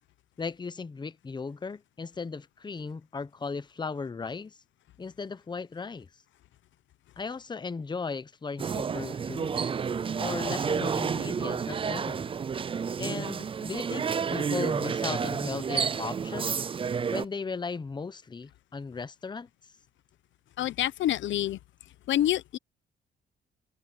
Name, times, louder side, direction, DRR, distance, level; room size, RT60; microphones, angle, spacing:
voice 1, 0.4-4.6 5.0-6.1 7.2-9.6 10.2-12.3 13.0-14.1 14.3-16.5 17.1-19.5, left 4 dB, 20° left, 0.8 m, -36 dB
sound 1, 8.6-17.2, right 6 dB, 25° right, 0.4 m, -30 dB
voice 2, 20.6-21.6 22.1-22.6, left 12 dB, 75° left, 0.8 m, -27 dB
cardioid pair, 90°, 20 cm